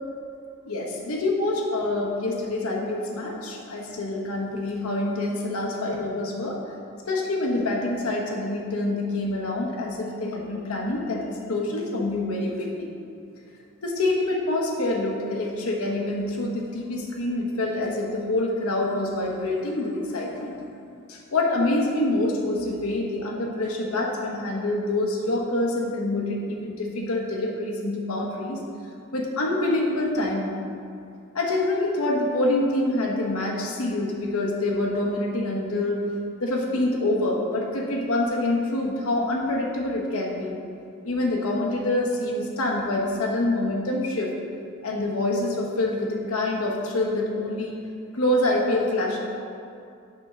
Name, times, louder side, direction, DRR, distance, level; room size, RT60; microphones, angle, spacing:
voice 1, 0.7-6.6 7.1-12.9 13.8-20.6 21.1-28.6 29.1-30.6 31.3-36.0 36.4-40.6 41.0-44.3 44.8-47.8 48.1-49.2, left 2 dB, 80° left, -1 dB, 1.0 m, -26 dB
6.2 x 3.7 x 5.4 m, 2.5 s
head